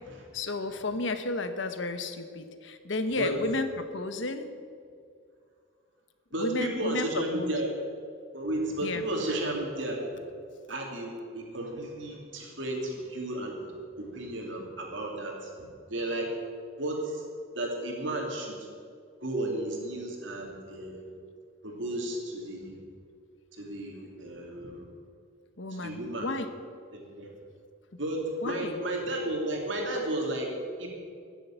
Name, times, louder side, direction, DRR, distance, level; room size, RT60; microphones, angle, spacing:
voice 1, 0.3-4.5 6.4-7.6 8.8-9.0 25.6-26.5 28.4-28.8, left 2 dB, 65° left, 9 dB, 1.1 m, -32 dB
voice 2, 6.3-7.7 8.3-10.1 10.7-13.7 14.0-15.5 15.9-16.3 16.8-17.2 17.5-18.6 19.2-21.1 21.6-22.8 23.5-24.9 25.7-26.3 26.9-27.3 28.0-30.9, right 1 dB, 70° right, 0 dB, 2.9 m, -33 dB
15.0 x 7.7 x 9.1 m, 2.3 s
head